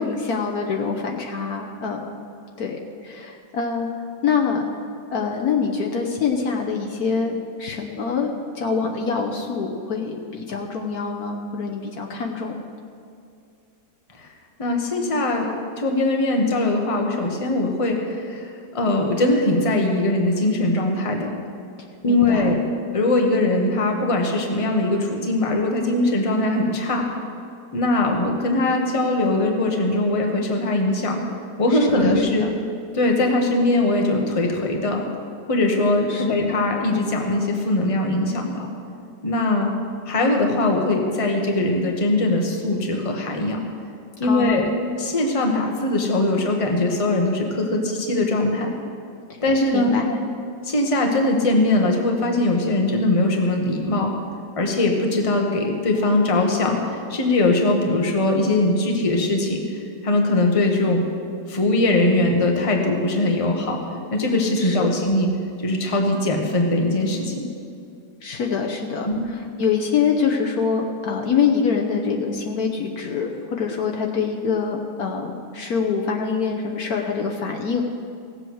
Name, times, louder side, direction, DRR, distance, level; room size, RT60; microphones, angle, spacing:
voice 1, 0.0-2.1 2.6-3.9 4.2-4.7 5.1-7.3 7.6-12.6 22.1-22.6 31.7-32.5 36.1-36.4 44.2-44.7 49.7-50.2 64.6-65.0 68.2-77.8, left 5 dB, 60° left, 1 dB, 1.3 m, -25 dB
voice 2, 14.6-21.3 22.0-22.6 22.9-27.1 27.7-31.2 31.6-32.5 32.9-35.0 35.5-38.7 39.2-39.7 40.1-43.6 44.2-44.6 45.0-48.7 49.4-50.0 50.6-54.1 54.5-59.6 60.0-61.0 61.5-63.8 64.1-65.3 65.6-67.4 69.0-69.3, left 2 dB, 20° left, 2 dB, 1.2 m, -21 dB
16.5 x 7.8 x 6.3 m, 2.4 s
omnidirectional pair, 1.9 m